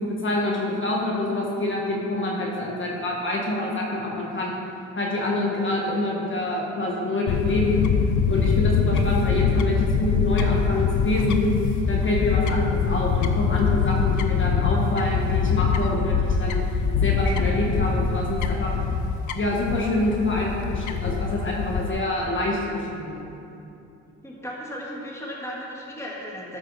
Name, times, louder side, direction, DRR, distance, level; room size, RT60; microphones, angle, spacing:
voice 1, 0.0-4.6 4.9-7.9 8.3-11.5 11.9-16.6 17.0-18.7 19.3-23.2, left 2 dB, 40° left, -3 dB, 1.6 m, -26 dB
Fowl / Bird, 7.3-21.9, left 5 dB, 70° left, 0.6 m, -24 dB
voice 2, 24.2-26.6, equal, 10° left, -4 dB, 1.6 m, -35 dB
12.5 x 4.8 x 4.1 m, 2.7 s
cardioid pair, 90°, 30 cm